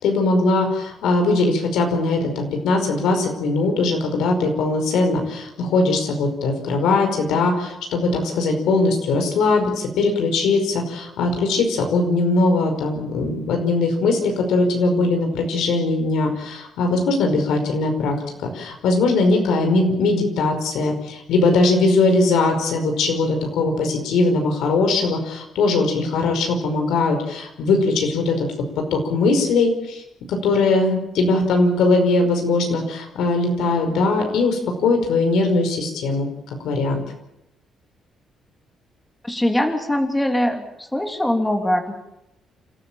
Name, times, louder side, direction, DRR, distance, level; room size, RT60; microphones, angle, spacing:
voice 1, 0.0-28.5 28.9-30.0 30.3-37.0, left 3 dB, 85° left, 4 dB, 5.2 m, -20 dB
voice 2, 39.2-42.0, left 1 dB, 10° left, 4 dB, 3.1 m, -22 dB
29.0 x 14.0 x 8.9 m, 0.88 s
cardioid pair, 90°, 0 cm